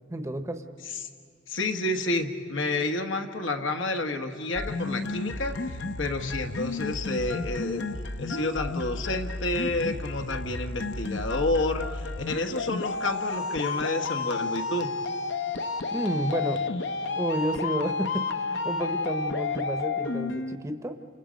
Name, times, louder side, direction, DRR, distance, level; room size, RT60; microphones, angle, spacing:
voice 1, 0.1-0.6 15.9-16.7 17.2-21.0, right 1 dB, 15° right, 8 dB, 0.8 m, -31 dB
voice 2, 1.5-7.9 8.2-14.9, left 2 dB, 85° left, 5 dB, 1.4 m, -30 dB
sound 1, 4.5-20.6, left 3 dB, 65° left, 0.8 m, -31 dB
29.5 x 27.0 x 5.2 m, 2.5 s
head